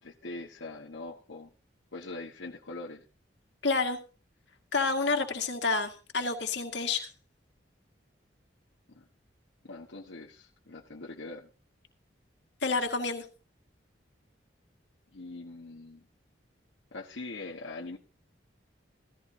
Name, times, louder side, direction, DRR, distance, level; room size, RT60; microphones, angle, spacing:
voice 1, 0.0-1.5 1.9-3.0 8.9-9.1 9.6-11.5 15.1-16.1 16.9-18.0, left 2 dB, 90° left, -2 dB, 1.3 m, -42 dB
voice 2, 3.6-4.0 4.7-7.1 12.6-13.2, left 4 dB, 70° left, 5 dB, 2.0 m, -29 dB
16.0 x 14.5 x 2.8 m, 0.34 s
head